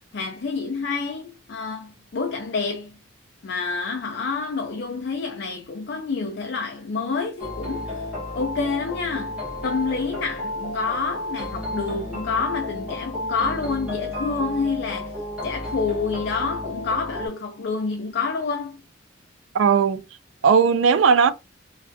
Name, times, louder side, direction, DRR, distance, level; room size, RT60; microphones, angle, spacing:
voice 1, 0.1-2.9 3.4-8.0 8.3-15.1 15.4-18.8, left 4 dB, 55° left, 0.4 m, -28 dB
sound 1, 7.4-17.3, left 1 dB, 5° right, 1.2 m, -32 dB
voice 2, 19.5-20.0 20.4-21.3, right 6 dB, 70° right, 0.3 m, -17 dB
3.2 x 2.4 x 2.6 m
head